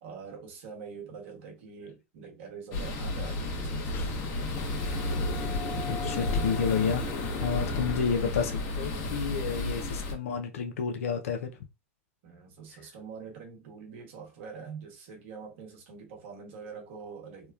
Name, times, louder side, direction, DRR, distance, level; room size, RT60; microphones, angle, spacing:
voice 1, 0.0-4.1 9.3-9.4 12.2-17.5, right 5 dB, 60° right, 1.0 m, -45 dB
sound 1, 2.7-10.1, left 2 dB, 45° left, 1.0 m, -32 dB
sound 2, 3.8-8.0, left 4 dB, 30° left, 0.4 m, -44 dB
voice 2, 5.9-7.0 7.4-11.5, left 6 dB, 80° left, 0.5 m, -30 dB
3.0 x 2.1 x 2.3 m
hypercardioid pair, 115°, 7 cm